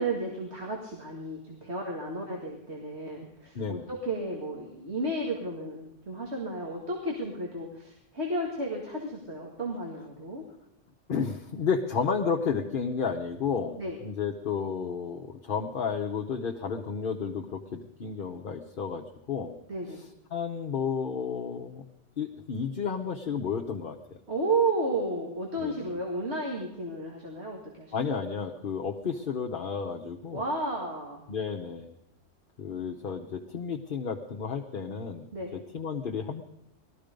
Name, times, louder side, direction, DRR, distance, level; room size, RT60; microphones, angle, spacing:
voice 1, 0.0-10.4 13.8-14.0 19.7-20.0 24.3-27.9 30.3-31.3 35.3-35.6, right 2 dB, 65° right, -1 dB, 2.3 m, -33 dB
voice 2, 3.5-3.9 11.1-19.5 20.3-21.8 22.2-24.0 25.6-25.9 27.9-30.5 31.3-31.9 32.6-35.3 35.7-36.4, left 6 dB, 50° left, 3 dB, 1.0 m, -32 dB
19.5 x 13.5 x 5.1 m, 0.82 s
omnidirectional pair, 1.2 m